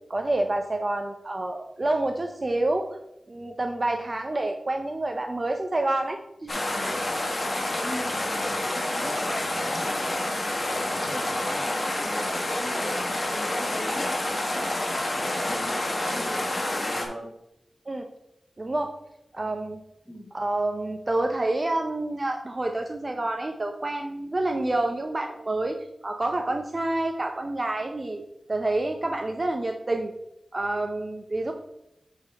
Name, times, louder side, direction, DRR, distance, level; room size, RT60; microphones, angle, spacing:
voice 1, 0.1-2.9 3.3-6.7 17.9-18.0 18.6-18.9 19.3-19.8 20.3-25.8 26.0-28.2 28.5-30.1 30.5-31.5, right 2 dB, 35° right, 4 dB, 0.6 m, -28 dB
sound 1, 6.5-17.1, left 1 dB, 40° left, 1.3 m, -28 dB
voice 2, 7.8-8.6 8.9-10.5 10.9-14.1 14.6-17.3 20.1-20.3, equal, 5° left, -1 dB, 1.9 m, -39 dB
9.0 x 4.1 x 4.0 m, 0.84 s
wide cardioid pair, 100°, 0 cm